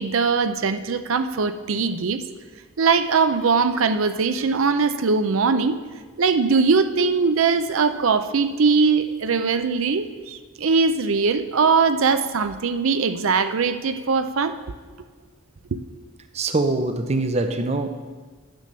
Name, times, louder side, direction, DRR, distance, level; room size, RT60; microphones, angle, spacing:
voice 1, 0.0-2.2 2.8-5.8 6.2-14.6 15.7-15.8, right 4 dB, 75° right, 10 dB, 0.5 m, -21 dB
voice 2, 16.3-18.1, right 2 dB, 30° right, 7 dB, 0.5 m, -24 dB
9.7 x 6.7 x 6.7 m, 1.4 s
head